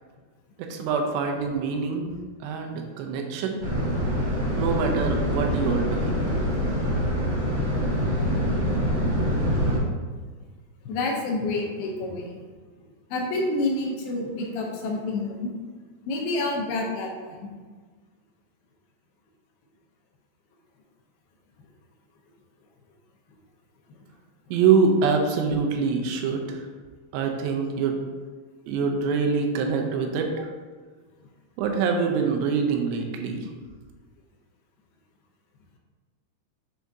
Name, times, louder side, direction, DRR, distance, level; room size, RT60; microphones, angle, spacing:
voice 1, 0.6-2.1 2.4-3.6 4.6-6.4 24.5-26.6 27.1-28.0 28.7-30.5 31.6-33.5, right 5 dB, 90° right, 3 dB, 2.8 m, -25 dB
sound 1, 3.6-9.8, equal, 60° right, 1.1 m, -25 dB
voice 2, 10.8-12.3 13.1-15.5 16.1-17.5, left 2 dB, 75° left, 0 dB, 2.5 m, -28 dB
10.0 x 3.5 x 2.7 m, 1.4 s
omnidirectional pair, 4.9 m